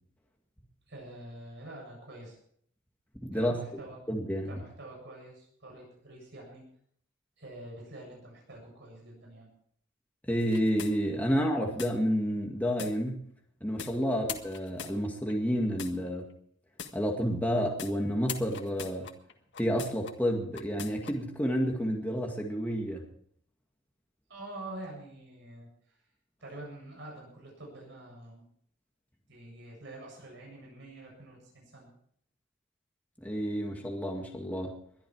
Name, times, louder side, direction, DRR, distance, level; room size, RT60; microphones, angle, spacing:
voice 1, 0.9-2.4 3.3-4.0 4.4-6.6 7.4-9.5 14.1-14.3 24.3-26.0 26.4-28.4 29.3-31.9, right 1 dB, 65° right, -1 dB, 7.8 m, -46 dB
voice 2, 3.2-3.6 4.1-4.5 10.3-13.2 13.6-16.3 16.9-19.1 19.6-23.0 33.2-34.7, equal, 10° left, 0 dB, 2.0 m, -30 dB
sound 1, 10.4-11.3 11.8-11.9 12.8-12.9 13.8-13.9 14.3-15.3 15.8-15.9 16.8-16.9 17.8-17.9 18.3-20.1 20.5-21.1, left 7 dB, 65° left, 1.7 m, -41 dB
22.0 x 12.0 x 4.8 m, 0.64 s
head